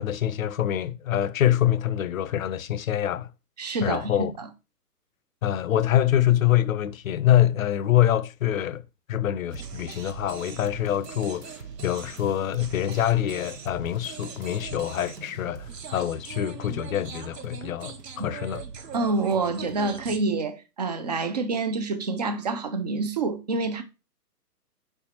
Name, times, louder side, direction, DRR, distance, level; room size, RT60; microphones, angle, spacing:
voice 1, 0.0-3.3 3.8-4.3 5.4-8.8 9.1-18.6, left 11 dB, 55° left, 0.6 m, -25 dB
voice 2, 3.6-4.5 18.2-18.3 18.9-23.8, right 3 dB, 25° right, 0.5 m, -27 dB
sound 1, 9.5-20.2, right 6 dB, 80° right, 1.1 m, -41 dB
5.0 x 4.5 x 4.4 m
hypercardioid pair, 135°, 48 cm